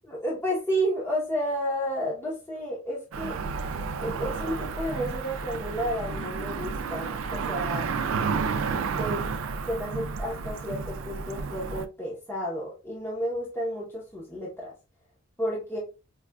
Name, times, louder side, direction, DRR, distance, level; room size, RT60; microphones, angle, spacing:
voice 1, 0.1-3.4 4.0-7.9 9.0-9.3 9.7-14.7 15.4-15.8, equal, 10° left, -5 dB, 0.8 m, -31 dB
Cricket / Motor vehicle (road), 3.1-11.9, right 5 dB, 80° right, 0.4 m, -31 dB
4.8 x 2.3 x 2.2 m, 0.31 s
head